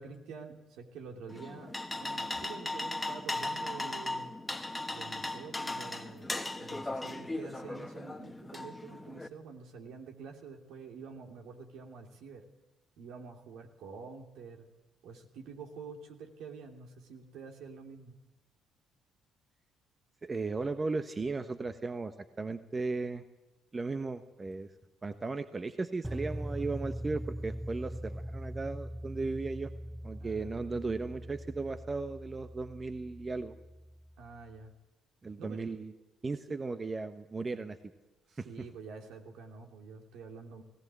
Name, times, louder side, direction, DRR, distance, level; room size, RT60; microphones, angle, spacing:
voice 1, 0.0-4.4 4.9-12.4 13.0-14.7 15.0-18.2 30.2-30.7 34.2-34.7 35.4-35.9 38.3-40.6, right 5 dB, 70° right, 2 dB, 2.8 m, -48 dB
sound 1, 1.3-9.3, left 2 dB, 15° left, 1.6 m, -37 dB
voice 2, 20.2-23.2 23.7-24.7 25.0-29.7 30.0-33.5 35.2-35.9 36.2-37.8 38.4-38.5, right 3 dB, 30° right, 9 dB, 1.2 m, -36 dB
sound 2, 26.0-34.2, equal, 5° right, 0.8 m, -41 dB
18.0 x 18.0 x 8.3 m, 1.1 s
hypercardioid pair, 50°, 0 cm